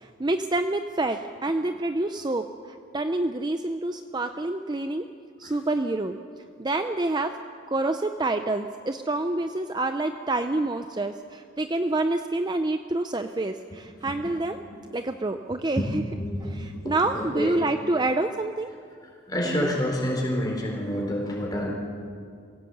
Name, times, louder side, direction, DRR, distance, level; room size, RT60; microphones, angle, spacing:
voice 1, 0.0-5.0 5.4-6.2 6.6-7.4 7.7-14.6 14.9-16.0 16.4-18.7 19.4-19.7, right 2 dB, 20° right, 7 dB, 0.5 m, -27 dB
voice 2, 14.0-14.3 14.7-14.8 15.7-17.6 19.0-21.7, equal, 20° left, -2 dB, 4.3 m, -29 dB
22.0 x 16.5 x 8.0 m, 2.3 s
head